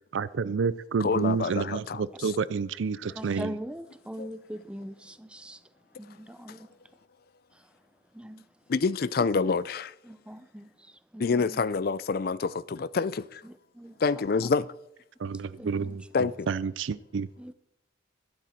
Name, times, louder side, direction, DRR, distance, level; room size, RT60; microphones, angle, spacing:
voice 1, 0.1-3.5 15.2-16.0 16.5-17.3, right 5 dB, 75° right, 0.4 m, -29 dB
voice 2, 1.0-2.3 4.2-4.3 8.7-9.9 11.2-13.4 14.0-14.7 16.1-16.5, left 4 dB, 50° left, 0.4 m, -27 dB
voice 3, 3.1-5.6 5.9-7.0 7.5-7.7 8.1-8.5 10.0-11.7 13.4-14.2 15.2-16.0 17.4-17.5, equal, 5° right, 0.5 m, -42 dB
12.5 x 11.5 x 4.4 m
head